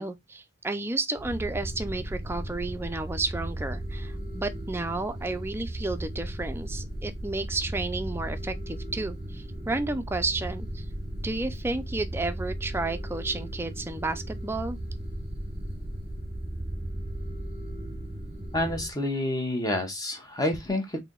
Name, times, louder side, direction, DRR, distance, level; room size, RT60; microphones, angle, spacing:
voice 1, 0.0-10.8 11.2-14.8, right 2 dB, 10° right, 0.4 m, -32 dB
sound 1, 1.2-18.9, right 1 dB, 30° right, 0.8 m, -36 dB
voice 2, 18.5-21.0, left 1 dB, 20° left, 0.8 m, -28 dB
3.3 x 2.7 x 3.8 m
head